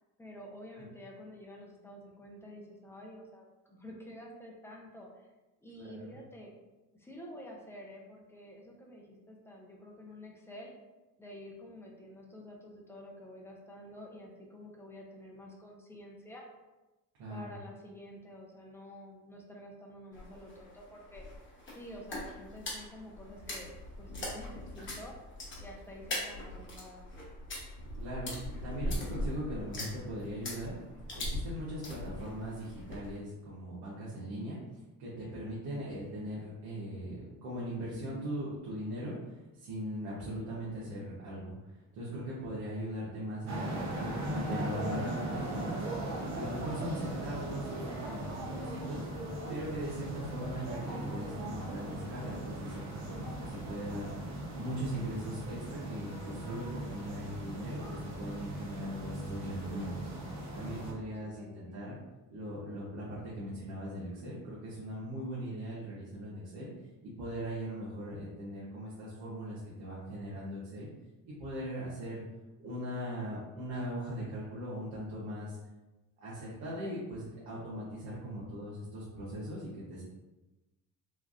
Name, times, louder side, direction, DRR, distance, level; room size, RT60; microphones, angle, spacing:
voice 1, 0.2-5.3 5.6-6.5 7.0-10.7 11.2-16.5 17.3-21.2 21.7-23.7 24.0-25.1 25.6-27.1 61.2-62.0, left 1 dB, 5° left, -2 dB, 0.6 m, -49 dB
voice 2, 5.8-6.2 17.2-17.5 28.0-28.3 28.6-30.8 31.1-34.6 35.0-39.1 39.5-44.1 44.4-45.8 46.3-49.0 49.5-54.1 54.6-60.1 60.5-62.0 62.3-66.7 67.2-70.9 71.3-72.2 72.6-75.6 76.2-80.0, equal, 90° right, -8 dB, 0.9 m, -40 dB
sound 1, 20.1-33.2, left 1 dB, 30° left, 1.0 m, -41 dB
sound 2, 43.5-60.9, right 1 dB, 50° right, 0.8 m, -39 dB
3.2 x 2.3 x 2.4 m, 1.1 s
cardioid pair, 95°, 37 cm